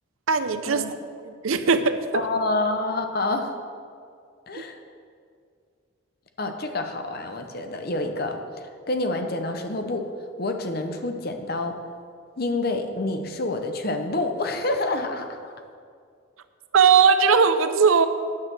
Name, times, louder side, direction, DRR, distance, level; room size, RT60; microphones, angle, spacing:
voice 1, 0.3-0.8 1.2-2.2 16.7-18.1, right 5 dB, 85° right, 11 dB, 0.6 m, -19 dB
voice 2, 2.1-3.5 4.5-4.8 6.4-10.1 10.4-11.8 12.4-15.5, left 2 dB, 50° left, 6 dB, 0.8 m, -28 dB
9.7 x 6.6 x 7.4 m, 2.3 s
head